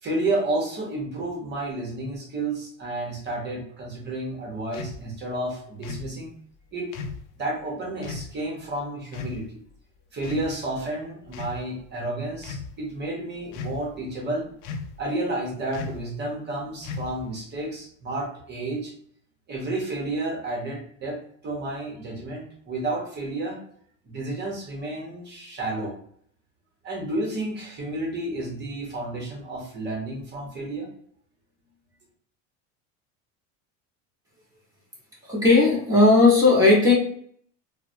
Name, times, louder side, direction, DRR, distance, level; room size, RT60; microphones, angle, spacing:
voice 1, 0.0-6.4 6.7-6.9 7.4-9.6 10.1-14.5 15.0-18.9 19.5-23.6 24.0-25.9 26.8-30.9, right 2 dB, 30° right, 0 dB, 0.9 m, -31 dB
sound 1, 4.7-5.0 5.8-6.1 6.9-7.2 8.0-8.3 9.1-9.4 10.2-10.8 11.3-11.6 12.3-12.7 13.5-14.0 14.6-15.0 15.7-16.1 16.8-17.3, left 4 dB, 75° left, 0.5 m, -36 dB
voice 2, 35.3-36.9, left 3 dB, 10° right, -6 dB, 1.1 m, -16 dB
3.1 x 2.1 x 2.6 m, 0.63 s
cardioid pair, 140°, 37 cm